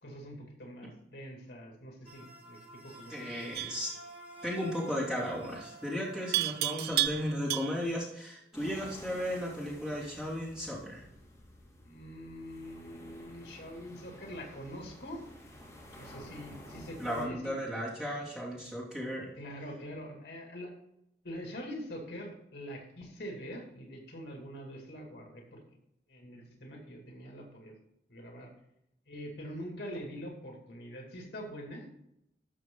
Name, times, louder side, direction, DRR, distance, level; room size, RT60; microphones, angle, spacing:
voice 1, 0.0-3.7 11.8-15.2 15.9-17.6 19.4-20.7 21.2-25.6 26.1-27.8 28.1-28.5 29.1-31.9, equal, 70° left, 1 dB, 2.3 m, -44 dB
sound 1, 2.1-8.0, right 1 dB, 35° right, 1.6 m, -51 dB
voice 2, 3.1-3.9 4.4-11.0 17.0-19.3, equal, 5° right, -7 dB, 3.0 m, -35 dB
Livestock farm animals working animals, 3.6-3.9 6.3-8.0, right 14 dB, 55° right, 0.4 m, -32 dB
sound 2, 8.5-17.3, left 1 dB, 15° left, 2.4 m, -52 dB
13.0 x 6.4 x 3.8 m, 0.80 s
head